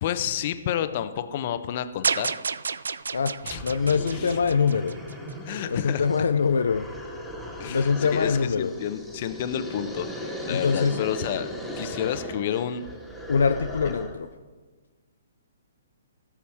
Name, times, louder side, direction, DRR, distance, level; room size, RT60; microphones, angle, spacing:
voice 1, 0.0-2.3 3.4-3.6 5.4-6.0 7.6-8.3 8.6-11.5 11.8-12.8, left 10 dB, 45° left, 11 dB, 0.7 m, -30 dB
sound 1, 2.0-5.3, right 5 dB, 75° right, 0.3 m, -30 dB
sound 2, 3.1-3.2 3.5-14.3, left 1 dB, ahead, 1.8 m, -37 dB
voice 2, 3.6-5.0 5.7-6.9 7.7-8.7 10.5-11.0 13.3-14.3, left 5 dB, 75° left, 9 dB, 0.4 m, -23 dB
17.0 x 7.1 x 3.5 m, 1.4 s
hypercardioid pair, 135°, 0 cm